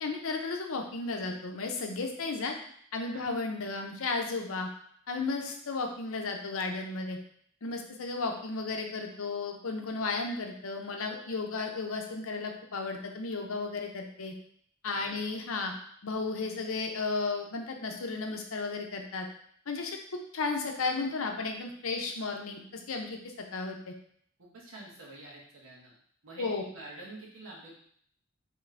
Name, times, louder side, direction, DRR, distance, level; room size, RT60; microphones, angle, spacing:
voice 1, 0.0-2.5 2.9-4.7 5.1-7.2 7.6-14.3 14.8-15.7 16.0-19.3 19.7-20.0 20.3-23.2 23.5-23.9 26.4-26.6, left 3 dB, 75° left, 3 dB, 0.6 m, -34 dB
voice 2, 14.9-15.2 24.4-25.9 26.2-27.7, right 2 dB, 75° right, -4 dB, 1.3 m, -47 dB
3.8 x 3.2 x 3.3 m, 0.63 s
head